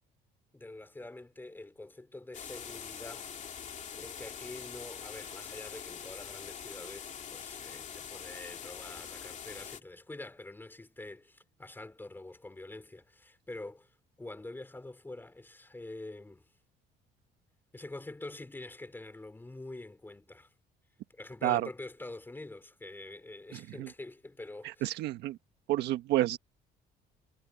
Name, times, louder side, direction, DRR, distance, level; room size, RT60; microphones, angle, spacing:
voice 1, 0.5-3.3 3.9-13.9 14.2-16.5 17.7-20.5 21.1-25.0, left 2 dB, 10° left, 3.0 m, -46 dB
sound 1, 2.3-9.8, left 8 dB, 45° left, 2.8 m, -44 dB
voice 2, 23.5-23.9 24.8-25.4 25.7-26.4, right 15 dB, 80° right, 1.5 m, -29 dB
cardioid pair, 110°, 17 cm